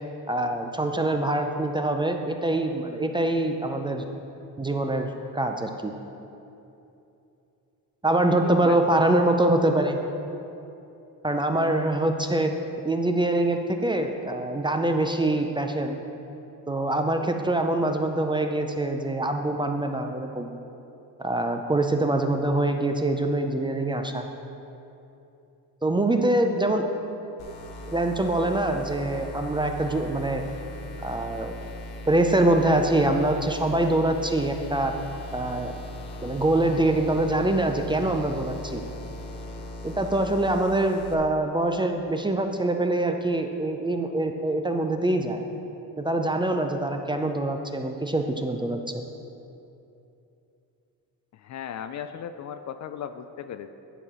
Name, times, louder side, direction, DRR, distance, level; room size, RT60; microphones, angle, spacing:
voice 1, 0.3-4.0 4.6-5.9 8.0-10.0 11.2-12.5 12.8-16.0 16.7-20.5 21.2-24.3 25.8-26.8 27.9-30.4 31.0-31.5 32.1-34.9 35.3-35.7 36.2-38.8 39.8-45.4 46.0-49.0, right 1 dB, 15° right, 5 dB, 0.4 m, -24 dB
voice 2, 8.3-8.8 51.3-53.7, left 9 dB, 45° left, 10 dB, 0.4 m, -36 dB
sound 1, 27.4-41.1, left 1 dB, 75° left, 1.0 m, -39 dB
10.0 x 4.6 x 4.9 m, 2.8 s
cardioid pair, 95°, 38 cm